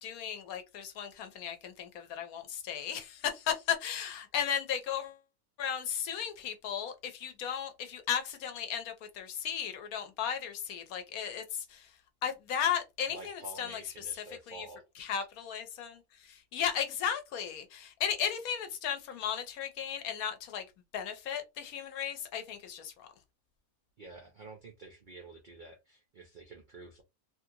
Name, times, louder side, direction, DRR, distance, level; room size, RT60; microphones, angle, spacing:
voice 1, 0.0-5.2 5.6-13.8 14.5-14.7 15.0-20.7 20.9-23.1, left 8 dB, 75° left, 1.1 m, -35 dB
voice 2, 13.1-14.9 24.0-27.0, right 2 dB, 70° right, 0.4 m, -49 dB
3.1 x 2.5 x 2.7 m
omnidirectional pair, 1.6 m